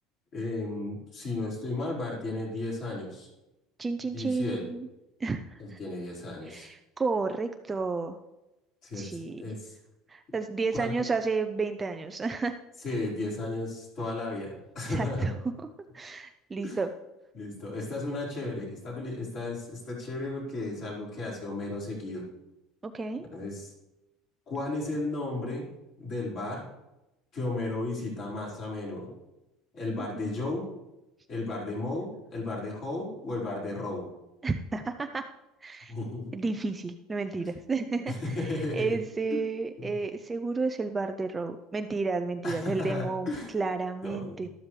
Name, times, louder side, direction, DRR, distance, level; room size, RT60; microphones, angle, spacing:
voice 1, 0.3-3.3 4.1-4.6 5.6-6.7 8.8-9.7 10.8-10.9 12.8-15.3 16.6-16.8 17.3-22.2 23.3-23.7 24.5-25.7 26.0-26.7 27.3-29.1 29.7-30.7 31.3-34.1 35.9-36.3 38.1-39.0 39.3-39.4 39.8-40.0 42.4-43.5 44.0-44.5, left 2 dB, 35° left, -4 dB, 4.6 m, -34 dB
voice 2, 3.8-4.9 5.2-5.8 6.4-8.2 8.9-9.4 10.1-12.5 14.9-15.7 15.9-16.9 22.8-23.2 30.0-30.3 34.4-35.2 35.6-35.9 36.3-44.5, right 4 dB, 15° right, 6 dB, 0.5 m, -32 dB
13.0 x 12.5 x 3.2 m, 0.97 s
cardioid pair, 165°, 0 cm